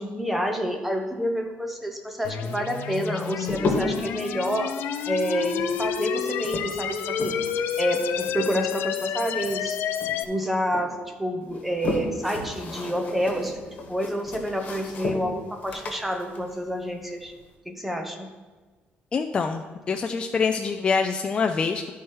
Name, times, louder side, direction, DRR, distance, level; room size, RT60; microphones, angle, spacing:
voice 1, 0.0-4.7 5.0-7.4 7.8-9.8 10.2-17.3 17.7-18.3, equal, 5° right, 4 dB, 0.8 m, -28 dB
sound 1, 2.2-10.2, left 8 dB, 80° left, 0.5 m, -30 dB
sound 2, 2.8-4.1 5.3-7.6 7.9-9.7 10.0-10.9 11.4-17.5, left 3 dB, 40° left, 1.5 m, -34 dB
voice 2, 19.1-21.9, left 5 dB, 25° left, 5 dB, 0.4 m, -25 dB
12.0 x 4.6 x 4.7 m, 1.3 s
cardioid pair, 170°, 4 cm